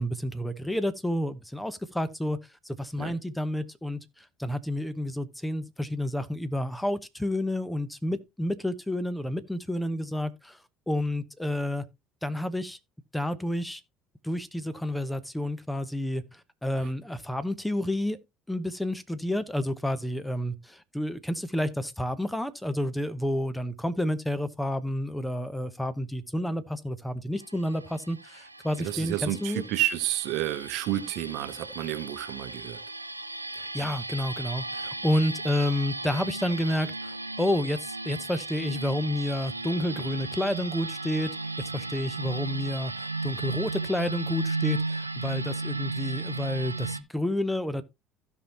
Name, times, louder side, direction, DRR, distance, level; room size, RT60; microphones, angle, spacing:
voice 1, 0.0-2.4 2.6-10.6 10.9-11.8 12.2-12.8 13.1-13.8 14.2-18.2 18.5-29.6 33.6-41.3 41.6-47.8, left 1 dB, 5° left, 1.0 m, -30 dB
sound 1, 27.4-47.0, right 3 dB, 85° right, 0.5 m, -35 dB
voice 2, 28.8-32.8, right 14 dB, 55° right, 1.0 m, -30 dB
16.0 x 5.6 x 2.9 m
figure-of-eight pair, 55°, 0 cm